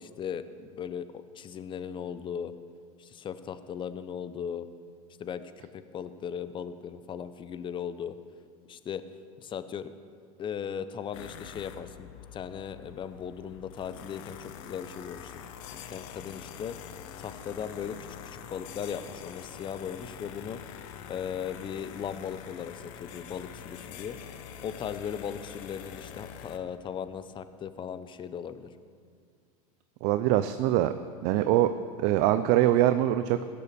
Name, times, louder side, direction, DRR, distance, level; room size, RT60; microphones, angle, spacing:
voice 1, 0.0-2.5 3.0-4.7 5.2-8.1 8.7-9.0 9.4-9.9 10.4-15.5 15.7-16.8 17.2-18.0 18.2-20.6 21.1-24.2 24.6-28.7, left 8 dB, 25° left, 12 dB, 0.7 m, -37 dB
sound 1, 11.1-26.6, left 9 dB, 70° left, 1.0 m, -45 dB
voice 2, 30.0-30.9 31.2-31.7 32.0-33.4, right 13 dB, 55° right, 11 dB, 0.5 m, -23 dB
16.5 x 6.9 x 6.9 m, 2.1 s
supercardioid pair, 110°, 18 cm